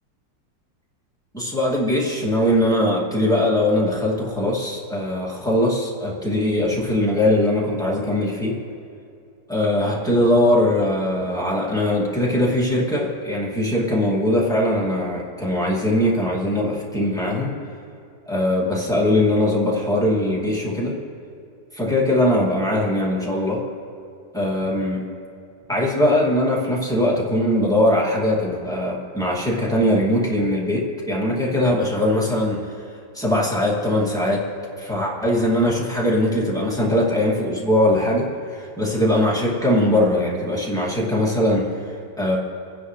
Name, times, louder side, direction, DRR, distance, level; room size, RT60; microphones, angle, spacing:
voice 1, 1.3-8.6 9.5-17.6 18.3-20.9 21.7-23.6 24.3-25.1 25.7-32.6 33.1-34.5 34.8-42.4, left 1 dB, ahead, -5 dB, 2.2 m, -21 dB
27.5 x 10.0 x 3.2 m, 2.5 s
omnidirectional pair, 1.9 m